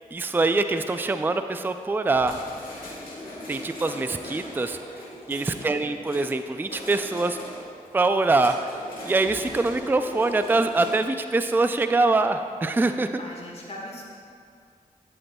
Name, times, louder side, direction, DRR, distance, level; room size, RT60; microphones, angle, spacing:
voice 1, 0.1-2.4 3.5-4.8 5.3-7.4 7.9-8.8 9.0-13.1, right 3 dB, 15° right, 9 dB, 0.3 m, -24 dB
sound 1, 2.1-10.9, left 1 dB, 70° left, 1.8 m, -40 dB
voice 2, 5.3-5.9 13.2-14.0, left 1 dB, 40° left, -2 dB, 1.6 m, -40 dB
11.0 x 7.9 x 2.3 m, 2.3 s
cardioid pair, 45°, 15 cm